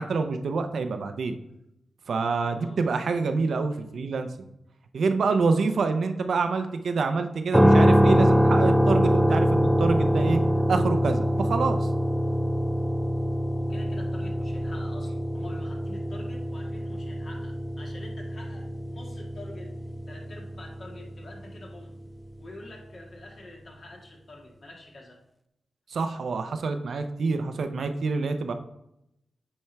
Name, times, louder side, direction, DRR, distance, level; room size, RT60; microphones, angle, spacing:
voice 1, 0.0-1.4 2.1-4.3 4.9-10.4 10.7-11.9 25.9-28.5, right 4 dB, 75° right, 7 dB, 0.6 m, -26 dB
voice 2, 2.4-2.9 5.4-5.8 13.6-19.7 20.1-21.9 22.4-25.2, left 2 dB, 55° left, -1 dB, 2.0 m, -46 dB
sound 1, 7.5-21.5, equal, ahead, 0.3 m, -24 dB
8.8 x 4.4 x 3.4 m, 0.83 s
cardioid pair, 75°, 0 cm